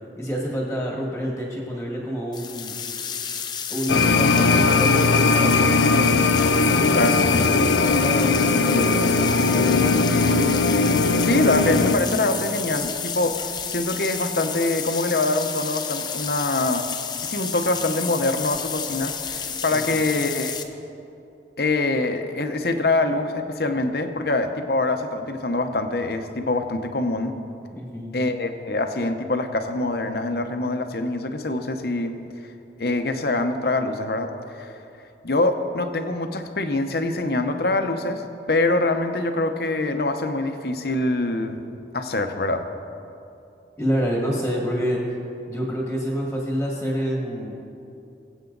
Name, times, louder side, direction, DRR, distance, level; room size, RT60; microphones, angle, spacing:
voice 1, 0.2-2.7 3.7-6.2 6.7-7.0 7.4-10.2 19.7-20.0 27.7-28.1 43.8-45.0 45.5-47.5, equal, 5° left, -2 dB, 1.6 m, -28 dB
sound 1, 2.3-20.6, left 7 dB, 25° left, 0.6 m, -31 dB
sound 2, 3.9-12.0, left 4 dB, 90° left, 0.6 m, -19 dB
voice 2, 6.9-7.3 11.2-16.9 17.2-20.6 21.6-27.3 28.1-32.1 32.8-34.7 35.2-41.6 41.9-42.6, left 2 dB, 60° left, 7 dB, 0.9 m, -24 dB
22.0 x 8.2 x 4.0 m, 2.7 s
head